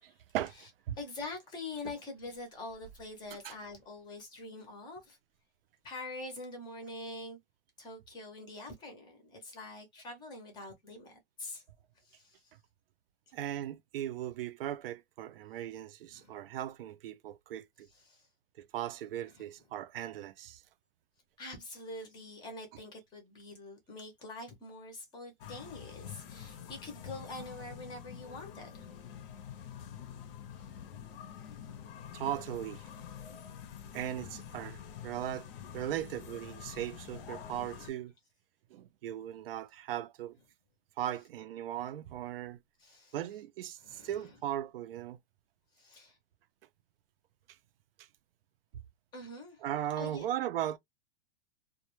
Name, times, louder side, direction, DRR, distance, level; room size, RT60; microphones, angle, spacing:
voice 1, 0.0-0.5 0.9-1.0 3.4-3.5 13.3-17.9 18.6-20.6 26.5-26.6 32.1-32.8 33.9-35.5 35.7-38.1 38.7-40.4 41.0-42.6 43.1-45.2 48.0-48.1 49.6-50.8, right 12 dB, 70° right, 0.4 m, -38 dB
voice 2, 1.0-5.2 5.8-7.4 7.8-11.6 12.0-12.5 13.3-13.4 16.1-16.5 17.9-18.3 19.4-19.5 21.4-29.2 32.1-32.2 42.8-43.1 43.8-44.3 45.8-46.2 49.1-49.6 50.0-50.3, left 2 dB, 15° left, 0.5 m, -45 dB
sound 1, 25.4-37.9, left 8 dB, 70° left, 0.6 m, -47 dB
2.2 x 2.1 x 2.9 m
supercardioid pair, 160°, 29 cm